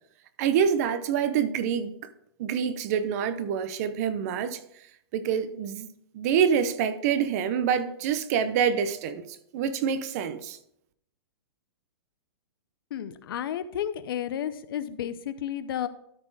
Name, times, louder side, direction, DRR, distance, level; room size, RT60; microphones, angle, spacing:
voice 1, 0.4-2.1 2.4-4.6 5.1-5.9 6.1-9.2 9.5-10.6, right 7 dB, 35° right, 0.7 m, -26 dB
voice 2, 12.9-15.9, left 10 dB, 55° left, 0.6 m, -32 dB
13.0 x 4.3 x 4.7 m
hypercardioid pair, 160°, 14 cm